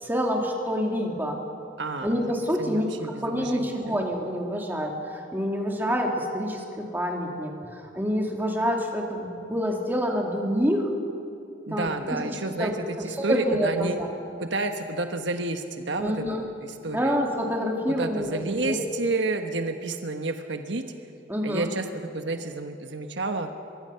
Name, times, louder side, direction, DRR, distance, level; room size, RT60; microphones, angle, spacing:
voice 1, 0.0-1.4 2.0-2.9 3.2-10.9 11.7-12.2 12.5-12.7 13.2-14.1 16.0-16.4 16.9-18.9 21.3-21.7, equal, 10° right, 0 dB, 2.6 m, -27 dB
voice 2, 1.8-2.2 2.6-4.0 11.7-14.0 14.4-17.2 17.9-20.8 21.4-23.5, right 2 dB, 70° right, 6 dB, 1.2 m, -30 dB
23.0 x 23.0 x 5.7 m, 2.6 s
head